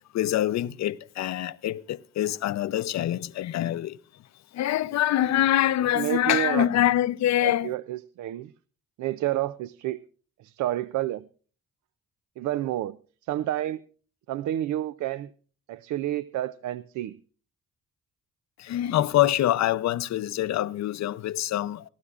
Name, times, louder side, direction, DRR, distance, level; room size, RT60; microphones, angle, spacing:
voice 1, 0.1-3.9 4.5-7.7 18.6-21.8, left 13 dB, 65° left, 0.6 m, -25 dB
voice 2, 6.0-6.7 7.4-8.5 9.0-10.0 10.4-11.3 12.4-13.0 13.3-13.8 14.3-15.3 15.7-17.2, right 13 dB, 75° right, 0.5 m, -29 dB
24.0 x 12.0 x 2.4 m
cardioid pair, 90°, 30 cm